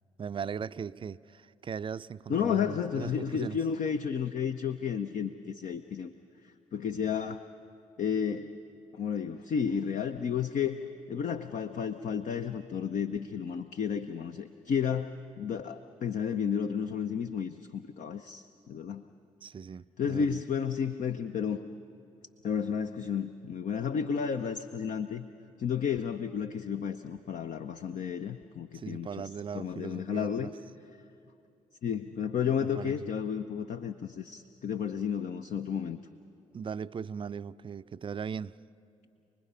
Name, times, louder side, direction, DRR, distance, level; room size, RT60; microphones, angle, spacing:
voice 1, 0.2-3.6 19.4-20.4 28.7-30.5 32.6-33.1 36.5-38.6, right 6 dB, 30° right, 0.5 m, -39 dB
voice 2, 2.3-6.1 6.7-7.4 8.0-8.5 8.9-10.8 11.1-19.0 20.0-21.6 22.4-25.2 25.6-29.3 29.5-30.5 31.8-36.0, left 7 dB, 50° left, 0.7 m, -32 dB
29.0 x 20.5 x 5.6 m
figure-of-eight pair, 40°, 16 cm